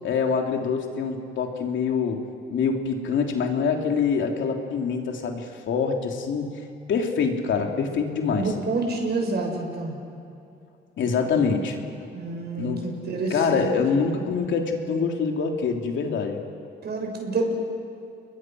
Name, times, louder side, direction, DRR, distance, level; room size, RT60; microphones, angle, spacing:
voice 1, 0.0-2.2 2.5-6.5 6.9-8.5 11.0-12.8 13.3-16.4, left 5 dB, 70° left, 2 dB, 3.3 m, -25 dB
voice 2, 8.4-10.0 12.1-13.8 14.1-14.2 16.8-17.4, right 3 dB, 55° right, 2 dB, 7.0 m, -28 dB
30.0 x 22.0 x 6.3 m, 2.6 s
cardioid pair, 90°, 20 cm